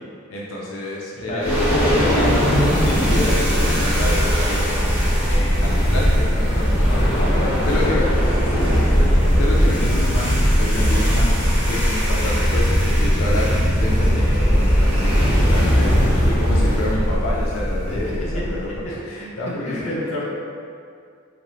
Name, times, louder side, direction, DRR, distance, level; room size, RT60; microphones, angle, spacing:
voice 1, 0.3-1.5 1.8-2.3 2.8-4.9 5.2-7.2 7.5-8.1 8.4-9.1 9.4-20.2, left 1 dB, 70° left, -4 dB, 0.4 m, -29 dB
voice 2, 1.1-2.4 6.4-6.5 7.2-7.9 8.5-8.8 17.9-18.4 19.1-20.2, equal, 35° left, -6 dB, 0.6 m, -30 dB
sound 1, 1.4-18.8, equal, 5° right, 0.8 m, -18 dB
3.1 x 2.5 x 3.0 m, 2.3 s
head